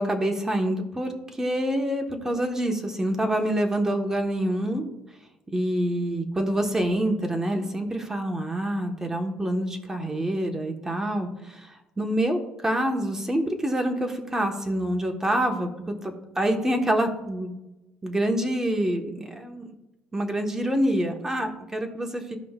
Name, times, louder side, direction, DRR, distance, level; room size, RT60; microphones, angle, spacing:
voice 1, 0.0-4.9 5.5-15.7 16.0-17.5 18.0-19.7 20.1-22.4, right 1 dB, 15° right, 4 dB, 1.3 m, -26 dB
15.0 x 5.2 x 2.4 m, 0.94 s
cardioid pair, 110°, 4 cm